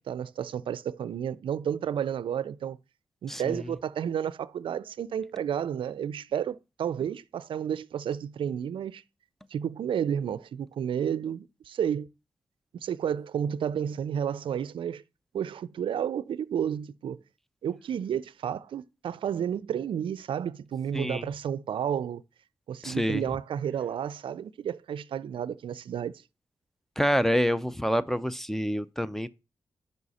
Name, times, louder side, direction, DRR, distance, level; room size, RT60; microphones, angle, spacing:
voice 1, 0.0-2.8 3.2-9.0 9.5-12.1 12.8-15.0 15.3-17.2 17.6-22.2 22.7-26.1, right 9 dB, 80° right, 0.4 m, -31 dB
voice 2, 3.3-3.7 20.9-21.2 22.8-23.2 27.0-29.3, equal, 5° left, 0.5 m, -27 dB
6.1 x 5.4 x 4.1 m
cardioid pair, 70°, 9 cm